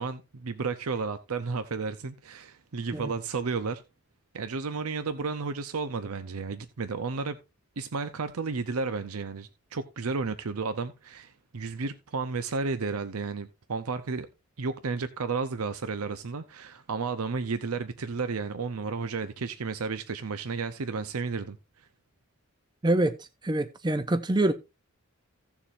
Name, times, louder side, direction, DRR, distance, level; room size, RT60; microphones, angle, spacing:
voice 1, 0.0-3.8 4.3-7.4 7.8-14.3 14.6-21.9, right 4 dB, 85° right, 0.7 m, -32 dB
voice 2, 22.8-23.2 23.4-24.5, right 1 dB, 20° right, 0.5 m, -25 dB
16.5 x 7.1 x 2.5 m
head